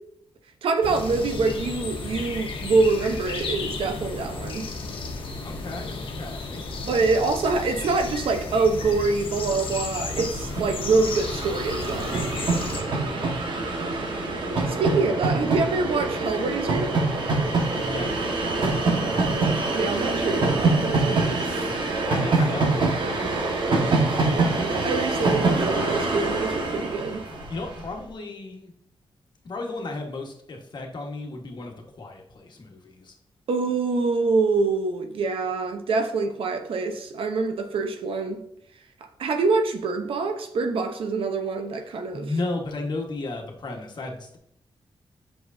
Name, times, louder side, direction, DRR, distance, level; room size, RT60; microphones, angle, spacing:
voice 1, 0.6-4.7 6.8-12.2 14.7-16.9 19.7-21.7 24.3-27.3 33.5-38.4 39.2-42.3, right 3 dB, 80° right, 0.9 m, -25 dB
sound 1, 0.8-12.8, left 3 dB, 75° left, 1.1 m, -33 dB
voice 2, 5.4-6.6 17.8-18.3 22.1-23.3 27.5-28.7 29.4-33.1 41.8-44.4, left 2 dB, 55° left, 1.4 m, -34 dB
Train, 9.2-9.3 9.4-27.8, right 3 dB, 60° right, 1.4 m, -25 dB
7.8 x 6.1 x 2.7 m
cardioid pair, 90°, 9 cm